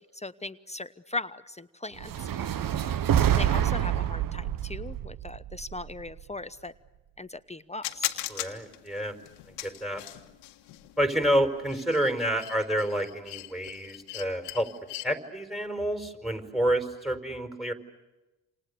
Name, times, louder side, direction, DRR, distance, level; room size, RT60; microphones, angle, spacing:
voice 1, 0.0-3.0 3.4-6.7 7.2-8.2, left 2 dB, 15° left, 13 dB, 0.9 m, -39 dB
sound 1, 2.0-6.2, right 10 dB, 55° right, 1.1 m, -27 dB
sound 2, 7.8-15.0, left 17 dB, 85° left, 1.6 m, -39 dB
voice 2, 8.3-9.1 9.5-10.0 11.0-14.7 15.0-17.7, equal, ahead, 7 dB, 4.9 m, -28 dB
28.0 x 28.0 x 6.8 m, 1.1 s
hypercardioid pair, 50°, 41 cm